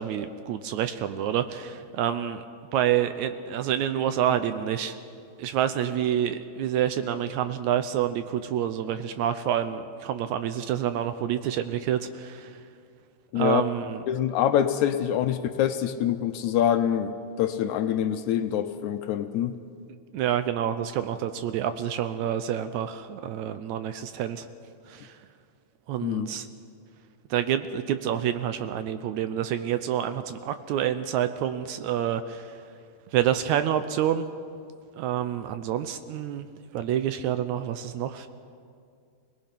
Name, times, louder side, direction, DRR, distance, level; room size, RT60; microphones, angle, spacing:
voice 1, 0.0-2.4 2.7-5.0 5.4-12.6 13.3-14.0 20.1-24.5 24.9-25.2 25.9-26.5 27.3-32.5 33.1-34.3 35.0-36.5 36.7-38.3, right 10 dB, 75° right, 10 dB, 1.9 m, -28 dB
voice 2, 14.1-19.6 26.0-26.3, left 10 dB, 75° left, 9 dB, 1.9 m, -25 dB
25.0 x 18.5 x 5.9 m, 2.3 s
omnidirectional pair, 3.7 m